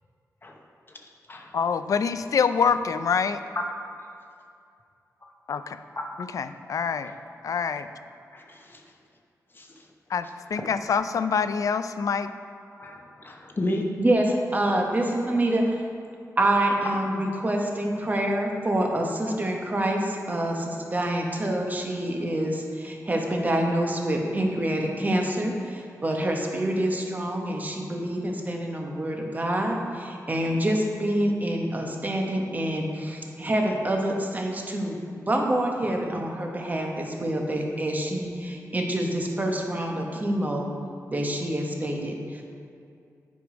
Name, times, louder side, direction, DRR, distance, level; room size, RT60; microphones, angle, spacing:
voice 1, 1.5-3.4 5.5-5.8 6.2-7.1 7.4-7.9 10.1-12.3, left 6 dB, 65° left, 11 dB, 0.3 m, -25 dB
voice 2, 8.3-8.8 9.5-9.7 12.8-14.0, left 1 dB, 35° left, 1 dB, 0.9 m, -32 dB
voice 3, 14.0-15.8 16.4-35.0 35.3-40.7 41.1-42.4, right 1 dB, 30° right, 1 dB, 1.2 m, -26 dB
7.9 x 5.1 x 5.0 m, 2.5 s
cardioid pair, 80°, 6 cm